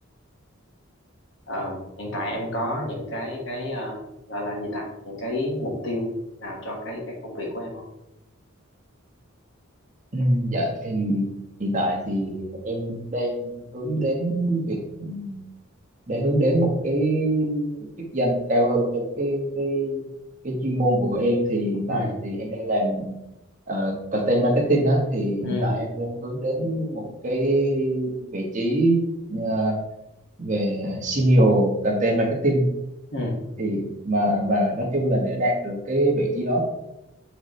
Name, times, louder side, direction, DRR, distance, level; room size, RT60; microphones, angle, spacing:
voice 1, 1.5-4.0 4.3-6.1 6.4-7.8 21.9-22.2 25.4-25.8 33.1-33.4, left 1 dB, 60° left, 0 dB, 1.7 m, -30 dB
voice 2, 10.1-11.3 11.6-15.5 16.1-20.0 20.4-23.2 23.7-29.0 29.3-29.8 30.4-32.7 33.6-36.6, right 1 dB, 35° right, 0 dB, 1.3 m, -24 dB
7.9 x 4.8 x 3.2 m, 0.91 s
head